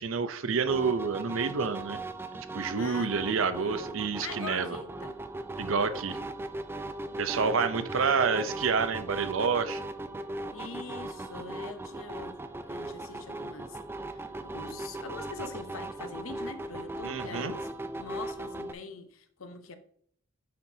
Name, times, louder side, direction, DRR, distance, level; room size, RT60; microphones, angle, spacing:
voice 1, 0.0-2.0 2.5-4.8 5.6-6.2 7.2-9.8 17.0-17.5, right 5 dB, 75° right, 0.6 m, -28 dB
sound 1, 0.7-18.7, right 2 dB, 10° right, 0.3 m, -38 dB
voice 2, 2.8-5.2 7.9-8.1 8.4-8.7 10.5-12.4 12.6-17.7 18.0-19.8, left 4 dB, 80° left, 0.8 m, -43 dB
9.4 x 4.3 x 2.8 m
head